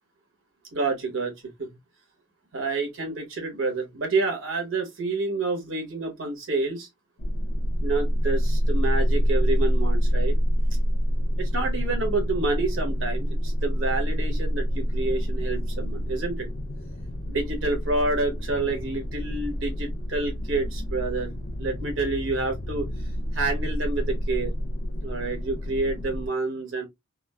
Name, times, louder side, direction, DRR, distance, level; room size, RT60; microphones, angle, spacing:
voice 1, 0.7-1.3 1.6-1.7 2.5-6.9 7.8-10.3 11.4-16.5 17.3-21.3 21.6-22.9 23.3-24.5 25.0-26.8, right 3 dB, 75° right, 1.3 m, -28 dB
sound 1, 7.2-26.3, equal, 55° left, 0.6 m, -27 dB
3.7 x 2.0 x 2.2 m
head